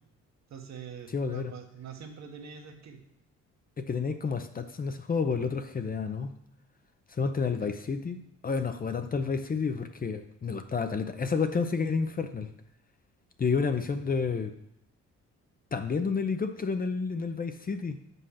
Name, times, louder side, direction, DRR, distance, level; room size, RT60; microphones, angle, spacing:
voice 1, 0.5-3.0 7.6-7.8, right 7 dB, 65° right, 3 dB, 1.3 m, -44 dB
voice 2, 1.1-1.5 3.8-6.3 7.1-12.5 13.4-14.5 15.7-18.0, left 5 dB, 30° left, 8 dB, 0.6 m, -30 dB
6.2 x 5.5 x 5.7 m, 0.76 s
cardioid pair, 90°, 30 cm